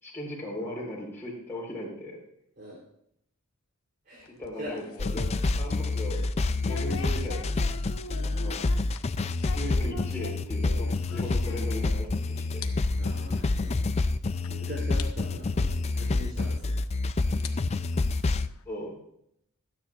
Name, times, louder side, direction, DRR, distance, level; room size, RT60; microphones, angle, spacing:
voice 1, 0.0-2.2 4.3-4.8 5.1-6.2 6.7-7.7 8.2-8.6 9.4-12.7 18.7-19.0, equal, 10° left, -5 dB, 4.0 m, -38 dB
sound 1, 4.2-12.1 12.4-12.7 13.0-13.1 13.8-13.9 14.4-14.5 15.0-15.1 16.4-16.5 17.2-18.6, left 3 dB, 70° left, 1.0 m, -44 dB
sound 2, 5.0-18.5, left 3 dB, 30° left, 0.4 m, -28 dB
voice 2, 13.0-13.8 14.5-16.8, left 1 dB, 45° right, -3 dB, 3.4 m, -41 dB
26.0 x 9.7 x 2.5 m, 0.72 s
head